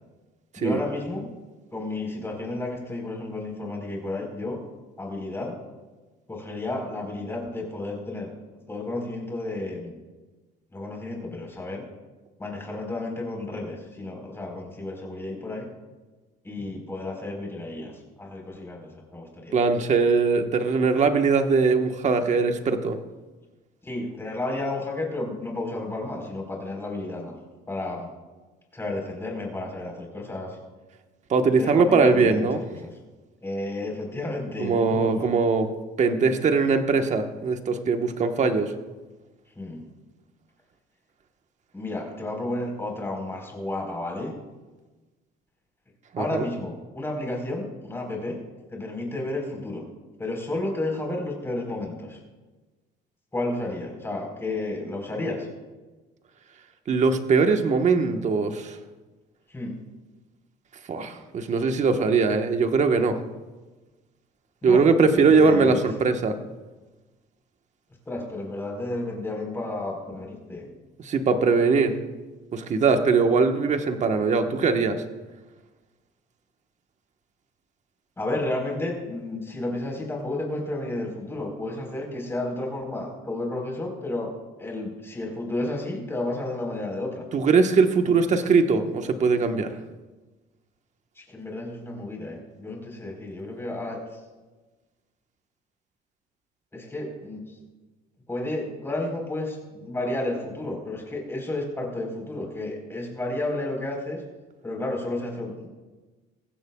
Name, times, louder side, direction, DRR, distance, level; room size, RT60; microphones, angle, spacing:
voice 1, 0.6-1.3 1.7-4.6 5.0-5.6 6.3-8.3 8.7-10.0 10.7-11.9 12.4-15.7 16.4-17.9 18.2-19.6 23.8-27.3 27.7-28.1 28.7-30.6 31.6-32.9 33.4-35.3 39.6-39.8 41.7-44.4 46.2-48.4 48.7-49.9 50.2-52.2 53.3-55.5 59.5-59.8 64.6-64.8 65.1-65.8 68.1-70.7 78.2-84.3 84.6-87.2 88.0-88.1 91.2-94.0 96.7-97.4 98.3-104.2 104.6-105.7, left 2 dB, 15° left, 0 dB, 4.2 m, -32 dB
voice 2, 19.5-23.0 31.3-32.6 34.6-35.7 36.0-38.7 46.1-46.5 56.9-58.8 60.9-63.2 64.6-66.4 71.0-71.9 72.5-75.0 87.3-89.7, right 4 dB, 45° right, 6 dB, 1.3 m, -21 dB
20.0 x 15.5 x 2.4 m, 1.2 s
cardioid pair, 110°, 17 cm